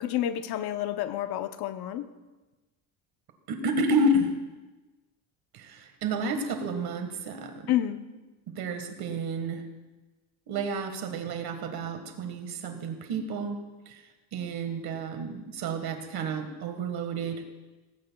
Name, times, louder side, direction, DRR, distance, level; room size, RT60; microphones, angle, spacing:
voice 1, 0.0-2.1 7.7-8.0, left 12 dB, 50° left, 11 dB, 0.8 m, -29 dB
voice 2, 3.5-4.3 5.5-7.7 8.5-9.6 10.5-13.6 13.9-14.0 14.3-17.4, right 2 dB, 50° right, 7 dB, 1.6 m, -30 dB
18.5 x 15.5 x 2.3 m, 1.2 s
cardioid pair, 150°, 48 cm